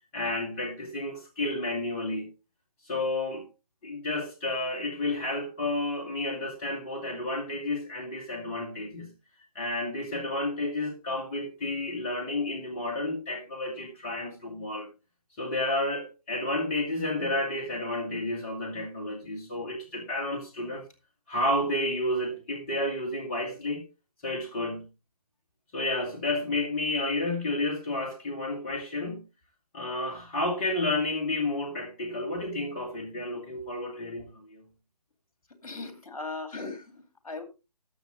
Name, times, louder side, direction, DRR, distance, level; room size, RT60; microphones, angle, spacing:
voice 1, 0.1-2.3 2.8-3.5 3.8-9.1 9.5-14.9 15.4-20.8 21.3-23.8 24.2-24.9 25.7-29.2 29.7-34.6, left 2 dB, 20° left, 2.1 m, -31 dB
voice 2, 35.6-37.4, left 3 dB, 60° left, 2.6 m, -38 dB
14.0 x 7.1 x 3.8 m
figure-of-eight pair, 145°, 21 cm